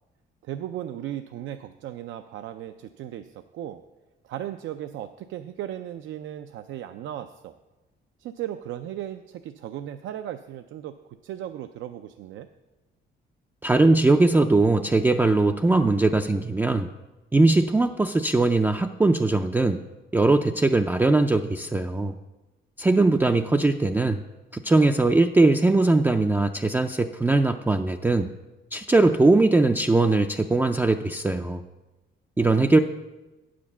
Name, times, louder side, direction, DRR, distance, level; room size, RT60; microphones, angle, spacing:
voice 1, 0.4-3.8 4.2-7.5 8.2-10.9 11.2-12.5 32.4-32.8, right 11 dB, 75° right, 8 dB, 0.4 m, -36 dB
voice 2, 13.6-16.9 17.3-19.8 20.1-22.2 22.8-24.2 24.5-28.3 28.7-31.6 32.4-32.8, right 2 dB, 10° right, 4 dB, 0.3 m, -20 dB
8.9 x 5.1 x 6.9 m, 1.1 s
cardioid pair, 90°, 20 cm